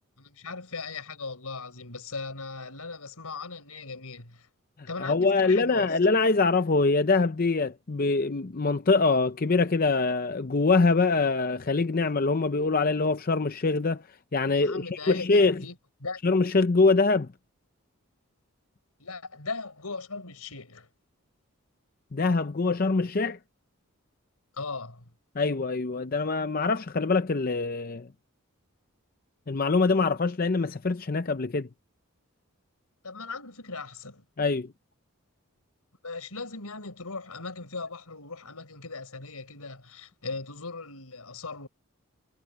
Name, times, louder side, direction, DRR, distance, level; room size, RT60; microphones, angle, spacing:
voice 1, 0.2-4.5 4.9-5.9 14.4-15.7 16.0-16.2 19.0-20.9 24.6-25.1 33.0-34.2 36.0-41.7, left 4 dB, 90° left, 4.7 m, -38 dB
voice 2, 5.0-14.0 14.3-15.6 16.2-17.3 22.1-23.4 25.4-28.1 29.5-31.7 34.4-34.7, left 3 dB, 40° left, 0.6 m, -24 dB
head